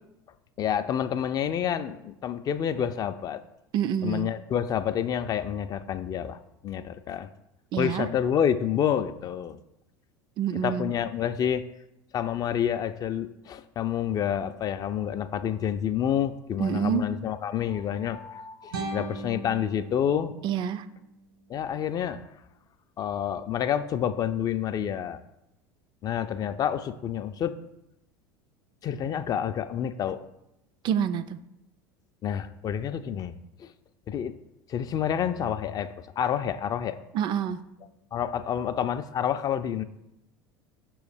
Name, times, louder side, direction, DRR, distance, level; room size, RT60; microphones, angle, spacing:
voice 1, 0.6-3.4 4.0-6.4 6.6-7.3 7.8-9.6 10.6-11.6 12.1-20.3 21.5-22.2 23.0-25.2 26.0-27.5 28.8-30.2 32.2-33.3 33.6-33.7 34.1-34.3 34.7-37.0 38.1-39.8, left 9 dB, 35° left, 11 dB, 0.4 m, -28 dB
voice 2, 3.7-4.3 7.7-8.1 10.4-10.9 16.6-17.0 20.4-20.9 30.8-31.4 37.1-37.6, right 9 dB, 40° right, 13 dB, 0.3 m, -27 dB
sound 1, 18.7-21.7, right 2 dB, 75° right, 0.9 m, -39 dB
6.2 x 3.1 x 4.9 m, 0.86 s
figure-of-eight pair, 75°, 12 cm